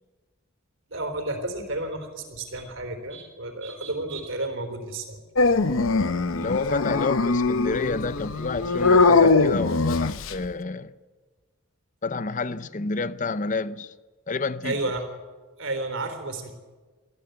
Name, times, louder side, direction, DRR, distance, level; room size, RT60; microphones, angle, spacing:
voice 1, 0.9-5.2 14.6-15.0 15.6-16.5, right 2 dB, 65° right, 3.7 m, -31 dB
Dog, 5.4-10.5, left 3 dB, 70° left, 0.8 m, -21 dB
voice 2, 6.3-11.0 12.0-13.9 14.3-14.7, left 3 dB, 35° left, 0.6 m, -29 dB
23.5 x 15.0 x 8.1 m
head